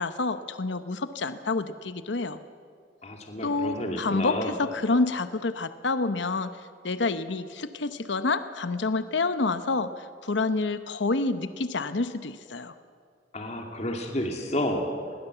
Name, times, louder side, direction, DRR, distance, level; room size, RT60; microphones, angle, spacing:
voice 1, 0.0-2.4 3.4-6.5 6.8-12.7, left 3 dB, 80° left, 12 dB, 0.9 m, -28 dB
voice 2, 3.0-4.5 13.3-15.3, left 1 dB, 40° left, 2 dB, 2.4 m, -31 dB
21.0 x 18.5 x 8.0 m, 2.1 s
head